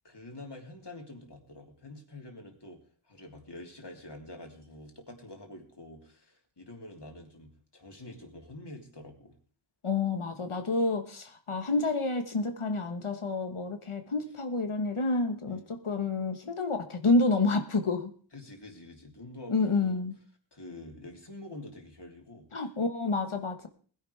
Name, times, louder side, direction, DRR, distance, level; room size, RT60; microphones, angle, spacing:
voice 1, 0.0-2.8 3.0-9.4 15.5-15.7 18.3-20.0 20.5-22.5, left 2 dB, 55° left, 1 dB, 3.3 m, -47 dB
voice 2, 9.8-18.1 19.5-20.1 22.5-23.7, left 3 dB, 90° left, 6 dB, 1.5 m, -29 dB
20.0 x 11.0 x 3.5 m, 0.43 s
wide cardioid pair, 50°, 49 cm